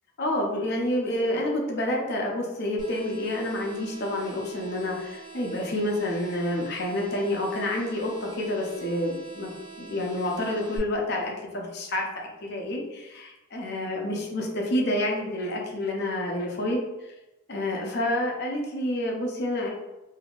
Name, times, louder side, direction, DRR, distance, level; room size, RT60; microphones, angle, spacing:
voice 1, 0.2-9.5 9.8-17.1 17.5-19.7, left 1 dB, 50° left, -1 dB, 0.7 m, -28 dB
sound 1, 2.8-10.8, right 3 dB, 65° right, 0.9 m, -45 dB
3.5 x 2.7 x 2.4 m, 1.0 s
head